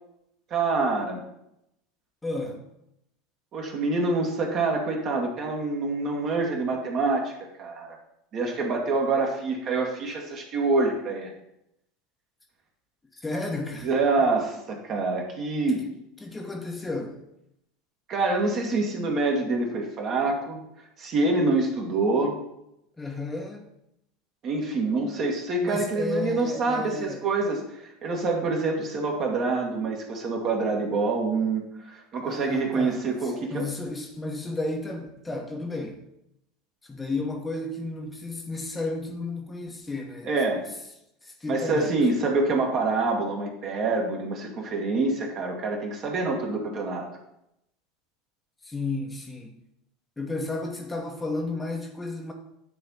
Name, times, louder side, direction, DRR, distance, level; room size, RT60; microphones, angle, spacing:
voice 1, 0.5-1.2 3.5-7.3 7.6-7.9 8.3-11.3 13.8-15.8 18.1-20.6 21.0-22.4 24.4-33.7 40.2-40.7 41.5-47.1, right 3 dB, 40° right, 1.8 m, -26 dB
voice 2, 2.2-2.7 13.1-13.9 15.7-15.8 16.2-17.2 23.0-23.7 25.6-27.3 32.2-36.0 36.8-40.4 41.2-41.9 48.6-49.6 50.2-52.3, left 2 dB, 15° left, 1.1 m, -33 dB
9.7 x 3.4 x 5.6 m
figure-of-eight pair, 80°, 0 cm